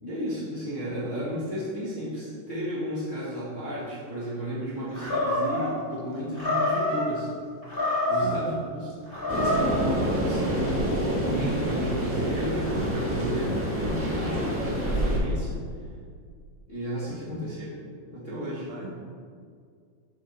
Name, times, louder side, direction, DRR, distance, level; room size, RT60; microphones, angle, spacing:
voice 1, 0.0-7.3 8.1-15.6 16.7-17.7 18.1-18.7, equal, 40° left, -10 dB, 1.2 m, -33 dB
Animal, 4.9-5.7 6.3-7.0 7.6-8.4 9.1-9.7, left 1 dB, 20° left, 1.7 m, -26 dB
sound 1, 9.3-15.2, right 1 dB, 20° right, 0.4 m, -27 dB
voice 2, 17.0-17.4 18.7-18.9, right 2 dB, 65° right, -2 dB, 1.9 m, -39 dB
8.1 x 5.6 x 4.0 m, 2.1 s
omnidirectional pair, 3.5 m